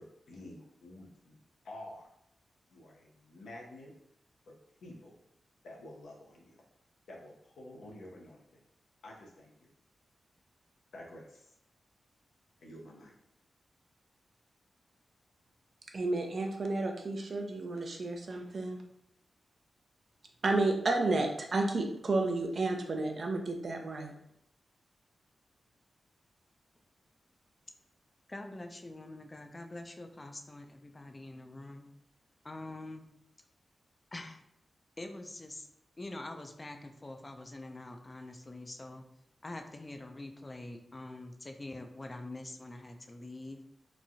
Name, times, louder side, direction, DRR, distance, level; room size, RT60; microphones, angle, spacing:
voice 1, 0.0-1.4 1.6-2.1 2.7-3.9 4.5-5.2 5.6-6.6 7.1-8.6 9.0-9.7 10.9-11.5 12.6-13.1, left 1 dB, 80° left, -2 dB, 0.6 m, -50 dB
voice 2, 15.9-18.8 20.4-24.1, right 2 dB, 60° right, 3 dB, 0.5 m, -31 dB
voice 3, 28.3-31.9 32.4-33.1 34.1-34.4 35.0-35.7 36.0-39.0 39.4-43.6, left 2 dB, 35° left, 5 dB, 0.4 m, -45 dB
3.0 x 2.2 x 2.6 m, 0.77 s
supercardioid pair, 40°, 0 cm